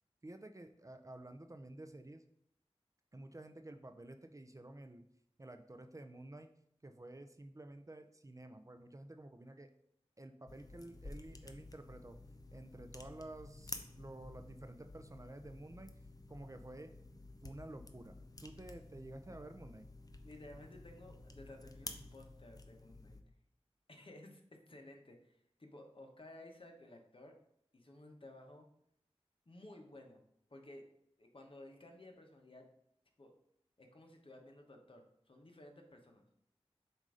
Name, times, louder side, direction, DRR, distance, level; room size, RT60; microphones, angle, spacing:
voice 1, 0.2-2.2 3.1-5.0 5.4-6.5 6.8-9.7 10.2-12.2 12.5-15.9 16.3-16.9 17.4-19.9, right 1 dB, 30° right, 7 dB, 0.5 m, -51 dB
sound 1, 10.5-23.2, left 2 dB, 35° left, 0.6 m, -52 dB
voice 2, 20.2-23.2 23.9-24.4 24.7-27.3 27.7-28.7 29.5-30.2 30.5-30.8 31.2-32.7 33.2-33.3 33.8-36.2, left 1 dB, 50° left, 3 dB, 1.1 m, -55 dB
7.4 x 2.7 x 4.9 m, 0.73 s
wide cardioid pair, 55°, 11 cm